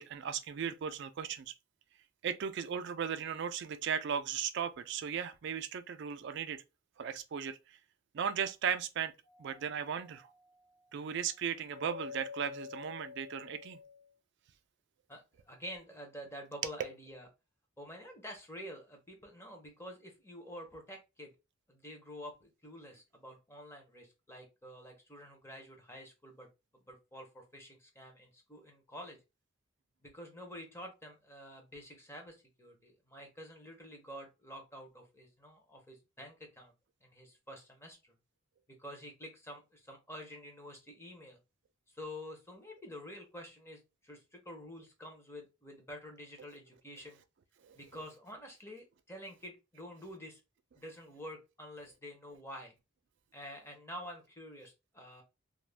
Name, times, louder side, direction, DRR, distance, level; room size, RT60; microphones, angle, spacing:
voice 1, 0.0-1.5 2.2-6.6 7.0-7.6 8.1-9.1 9.4-10.3 10.9-13.8 47.6-47.8, right 7 dB, 55° right, 0.3 m, -36 dB
Doorbell, 9.2-14.1, left 6 dB, 70° left, 1.3 m, -49 dB
voice 2, 15.1-17.3 17.8-21.3 21.7-26.5 26.7-29.2 30.0-36.7 37.0-38.1 38.8-41.4 41.9-47.2 47.7-50.4 50.7-52.7 53.3-55.2, equal, 10° left, 0.7 m, -48 dB
2.4 x 2.2 x 3.3 m
head